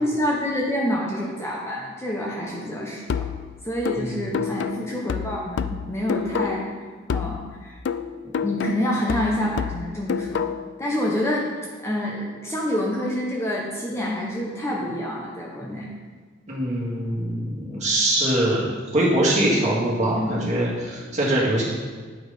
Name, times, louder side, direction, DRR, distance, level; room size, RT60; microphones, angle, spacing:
voice 1, 0.0-3.2 3.6-6.7 7.1-7.8 8.2-10.5 10.8-11.5 11.8-15.9 20.2-20.4, equal, 15° left, -3 dB, 0.8 m, -27 dB
sound 1, 3.1-6.8 7.1-10.8, left 7 dB, 60° left, 0.3 m, -29 dB
voice 2, 3.9-4.3 16.5-18.6 18.9-21.6, right 1 dB, 35° right, -6 dB, 2.1 m, -23 dB
8.1 x 4.7 x 5.1 m, 1.5 s
head